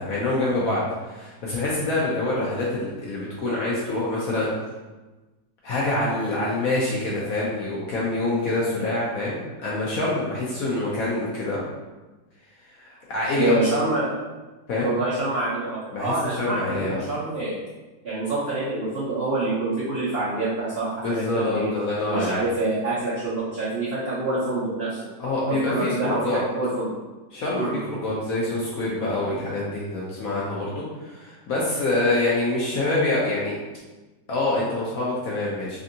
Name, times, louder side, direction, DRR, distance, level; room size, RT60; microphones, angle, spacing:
voice 1, 0.0-4.5 5.6-11.6 12.7-13.5 14.7-14.9 15.9-17.0 21.0-22.4 25.2-26.4 27.3-33.6 34.3-35.8, left 2 dB, 65° left, -6 dB, 0.8 m, -26 dB
voice 2, 13.4-14.1 14.8-17.5 18.0-21.7 22.1-25.0 25.5-26.9 27.5-27.8, right 2 dB, 75° right, -9 dB, 0.5 m, -26 dB
3.4 x 2.6 x 2.6 m, 1.2 s
omnidirectional pair, 2.0 m